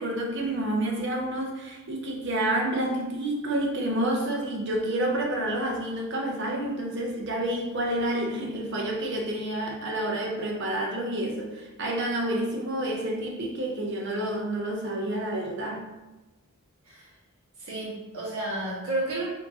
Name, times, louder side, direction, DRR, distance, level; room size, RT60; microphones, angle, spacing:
voice 1, 0.0-15.9, right 1 dB, 55° right, 0 dB, 0.7 m, -29 dB
voice 2, 17.6-19.2, right 2 dB, 80° right, -6 dB, 1.4 m, -31 dB
4.4 x 2.7 x 2.8 m, 1.1 s
head